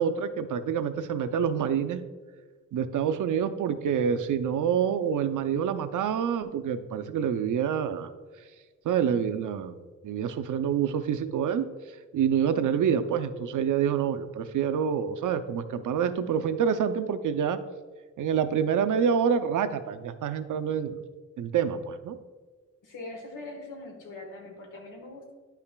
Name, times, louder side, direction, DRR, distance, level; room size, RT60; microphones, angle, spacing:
voice 1, 0.0-2.0 2.7-8.1 8.9-9.8 10.0-11.7 12.1-17.6 18.2-21.0 21.4-22.2, right 8 dB, 75° right, 9 dB, 0.5 m, -27 dB
voice 2, 22.8-25.3, left 2 dB, 90° left, 2 dB, 1.4 m, -42 dB
9.9 x 5.7 x 2.2 m, 1.4 s
wide cardioid pair, 110°, 31 cm